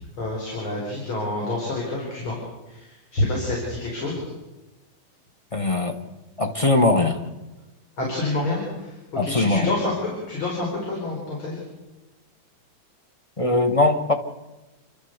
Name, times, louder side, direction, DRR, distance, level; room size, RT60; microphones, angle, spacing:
voice 1, 0.2-2.4 2.7-4.2 8.0-8.9 9.2-11.6, left 2 dB, 75° left, -2 dB, 5.6 m, -28 dB
voice 2, 5.5-6.0 6.4-7.2 9.1-9.7 13.4-14.1, left 2 dB, 20° left, 6 dB, 1.3 m, -20 dB
28.5 x 12.5 x 8.0 m, 1.1 s
omnidirectional pair, 2.3 m